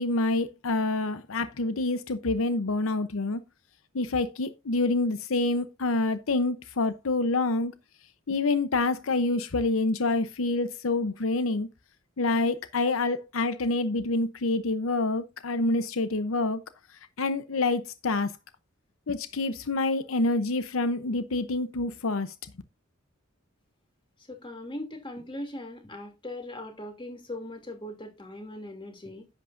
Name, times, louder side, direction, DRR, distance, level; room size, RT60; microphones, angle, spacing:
voice 1, 0.0-3.4 3.9-7.7 8.3-11.7 12.2-16.6 17.2-18.4 19.1-22.3, left 2 dB, 85° left, 0.8 m, -27 dB
voice 2, 24.3-29.3, left 1 dB, 25° left, 2.7 m, -39 dB
10.5 x 8.2 x 2.6 m
head